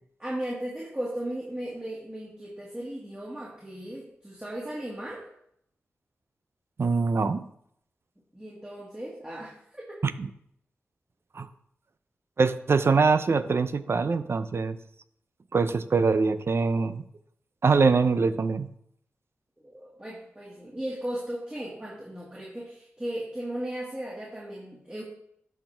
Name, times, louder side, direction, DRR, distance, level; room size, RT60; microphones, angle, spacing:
voice 1, 0.2-5.2 8.3-10.0 19.6-25.0, right 1 dB, 20° right, -5 dB, 2.0 m, -36 dB
voice 2, 6.8-7.5 10.0-10.3 11.3-11.5 12.4-14.8 15.5-17.0 17.6-18.7, right 4 dB, 55° right, 12 dB, 0.5 m, -23 dB
11.5 x 4.4 x 3.4 m, 0.71 s
cardioid pair, 50°, 5 cm